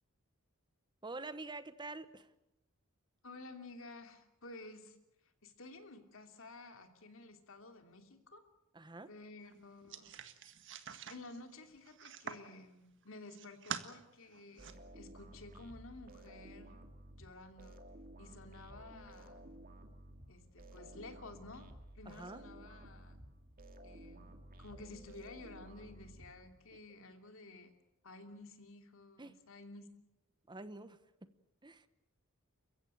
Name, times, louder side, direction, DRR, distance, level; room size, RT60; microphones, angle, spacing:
voice 1, 1.0-2.3 8.7-9.1 22.0-22.4 29.2-29.4 30.5-31.3 31.6-31.9, right 2 dB, 20° right, 12 dB, 1.0 m, -47 dB
voice 2, 3.2-5.0 5.4-8.4 9.1-10.2 11.1-16.8 17.2-17.8 18.2-19.5 20.3-21.7 21.9-23.2 23.8-27.7 28.0-29.9, left 2 dB, 65° left, 6 dB, 2.9 m, -53 dB
sound 1, 9.9-12.5 13.0-13.9 14.3-14.7, right 7 dB, 60° right, 1.7 m, -46 dB
sound 2, 14.6-26.8, right 1 dB, 45° right, 2.3 m, -54 dB
29.5 x 15.5 x 9.2 m, 0.93 s
head